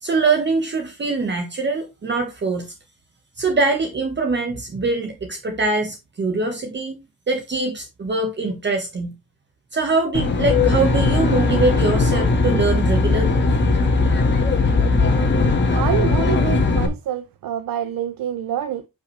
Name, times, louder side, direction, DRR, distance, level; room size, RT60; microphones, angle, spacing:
voice 1, 0.0-2.7 3.4-7.0 7.3-9.1 9.7-13.4, right 3 dB, 30° right, 1.5 m, -23 dB
Aircraft, 10.1-16.9, left 3 dB, 30° left, 2.0 m, -18 dB
voice 2, 15.7-18.9, right 10 dB, 70° right, 0.9 m, -26 dB
9.7 x 5.7 x 3.3 m
cardioid pair, 155°, 35 cm